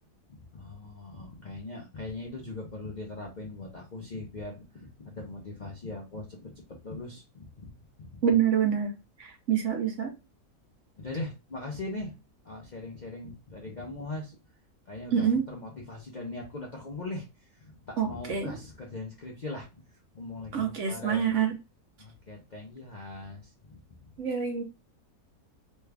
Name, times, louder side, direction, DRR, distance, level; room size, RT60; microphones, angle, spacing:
voice 1, 0.3-6.5 6.8-7.7 8.1-8.2 11.0-12.1 12.4-14.4 14.9-21.4 22.0-23.8, left 2 dB, 50° left, -1 dB, 0.5 m, -40 dB
voice 2, 8.2-8.9 9.2-10.1 15.1-15.4 18.0-18.5 20.5-21.5 24.2-24.6, right 8 dB, 65° right, 4 dB, 0.8 m, -26 dB
3.1 x 2.3 x 3.3 m, 0.27 s
omnidirectional pair, 1.6 m